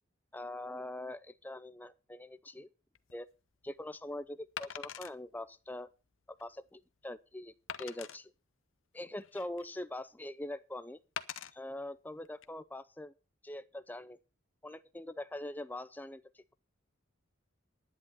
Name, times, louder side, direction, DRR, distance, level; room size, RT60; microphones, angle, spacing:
voice 1, 0.3-2.7 3.1-3.3 3.6-5.9 6.4-7.5 7.8-8.3 8.9-11.0 11.5-13.1 13.4-14.2 14.6-16.5, left 1 dB, 10° left, 0.5 m, -43 dB
Wood, 3.0-3.1 4.6-5.2 5.8-5.9 6.4-6.5 7.7-8.2 9.0-9.7 11.2-11.5 12.3-12.5, left 8 dB, 75° left, 0.8 m, -43 dB
11.0 x 9.9 x 5.6 m
head